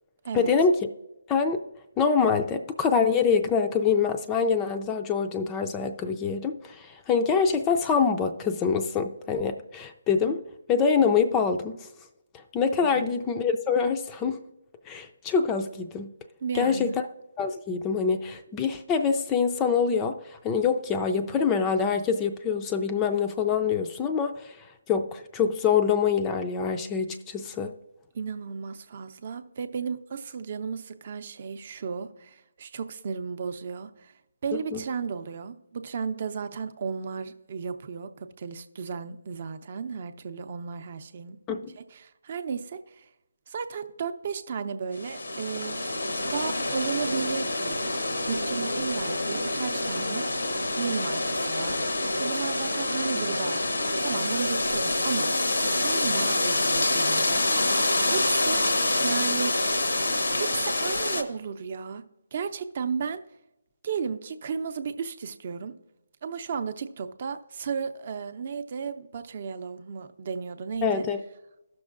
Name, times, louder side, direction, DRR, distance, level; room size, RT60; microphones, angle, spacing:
voice 1, 0.3-0.8 1.3-1.6 2.0-10.4 10.7-11.9 12.5-14.4 14.9-16.1 16.5-16.9 17.4-24.6 24.9-27.7 34.7-34.8 41.5-41.6 70.8-71.2, left 6 dB, 15° left, 6 dB, 0.4 m, -25 dB
voice 2, 16.4-16.9 28.1-34.1 34.4-41.4 41.8-43.1 43.5-45.9 46.3-47.9 48.3-50.3 50.7-57.6 58.0-58.6 59.0-59.5 60.3-62.0 62.3-63.2 63.8-65.7 66.2-71.1, right 6 dB, 45° right, 9 dB, 0.6 m, -34 dB
sound 1, 44.9-61.2, left 2 dB, 85° left, 0.9 m, -26 dB
14.5 x 6.1 x 2.5 m, 0.91 s
figure-of-eight pair, 150°, 0 cm